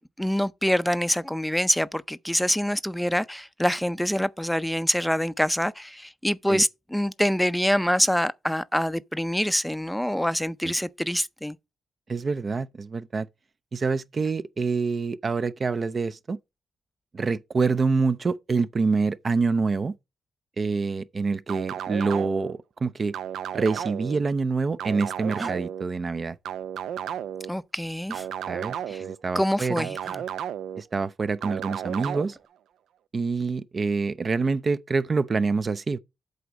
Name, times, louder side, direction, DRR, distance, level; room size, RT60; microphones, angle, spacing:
voice 1, 0.0-11.6 27.5-28.2 28.9-29.0 29.4-30.0, equal, 5° left, 0.5 m, -25 dB
voice 2, 12.1-13.3 13.7-16.4 17.1-20.0 20.6-23.1 23.5-26.4 28.5-29.9 30.8-32.4 33.1-36.0, right 4 dB, 40° right, 0.5 m, -26 dB
sound 1, 21.5-22.5 23.1-24.2 24.8-25.8 26.4-27.5 28.1-29.2 29.8-30.8 31.4-32.3, right 9 dB, 90° right, 0.5 m, -33 dB
sound 2, 25.4-25.6 28.1-28.3 30.0-30.3 32.0-32.5, right 1 dB, 15° right, 1.3 m, -39 dB
8.0 x 4.0 x 6.1 m
cardioid pair, 85°, 0 cm